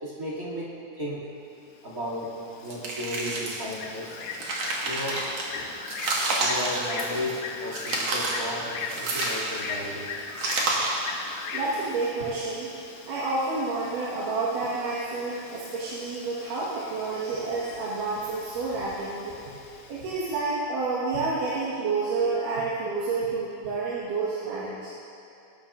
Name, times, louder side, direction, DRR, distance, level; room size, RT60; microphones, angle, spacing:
voice 1, 0.0-1.3 1.8-2.4 2.6-4.1 4.8-5.2 5.5-5.8 6.4-10.1 21.1-21.2, left 1 dB, 30° right, -6 dB, 2.4 m, -34 dB
Bird, 1.7-20.5, left 5 dB, 75° left, 1.9 m, -40 dB
sound 1, 2.7-3.7 4.2-5.4 5.9-7.4 7.7-8.5 8.9-9.8 10.4-11.1, right 2 dB, 55° right, 2.3 m, -29 dB
voice 2, 11.5-12.7 13.1-19.4 19.9-24.9, right 3 dB, 80° right, -7 dB, 3.0 m, -29 dB
19.5 x 11.5 x 2.5 m, 2.6 s
omnidirectional pair, 3.8 m